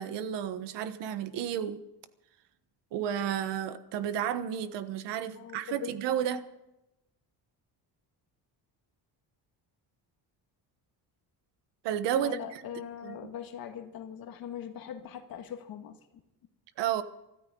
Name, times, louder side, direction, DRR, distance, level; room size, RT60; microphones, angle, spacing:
voice 1, 0.0-1.8 2.9-6.4 11.8-12.6 13.0-13.3 16.8-17.0, right 9 dB, 80° right, 1.3 m, -32 dB
voice 2, 5.4-5.9 12.1-16.0, left 9 dB, 55° left, 1.8 m, -41 dB
25.0 x 13.5 x 3.9 m
cardioid pair, 180°, 42 cm